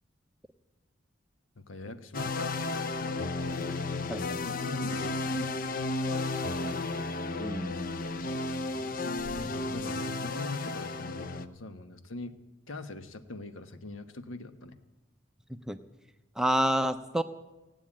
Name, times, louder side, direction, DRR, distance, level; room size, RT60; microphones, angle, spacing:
voice 1, 1.5-3.2 4.4-5.9 8.7-12.3 12.7-14.8, left 2 dB, 90° left, 9 dB, 1.1 m, -42 dB
sound 1, 2.1-11.5, left 3 dB, 45° left, 0.6 m, -33 dB
voice 2, 7.4-7.9 15.5-15.8 16.4-17.2, equal, 5° right, 9 dB, 0.5 m, -29 dB
16.5 x 9.1 x 8.6 m, 1.1 s
head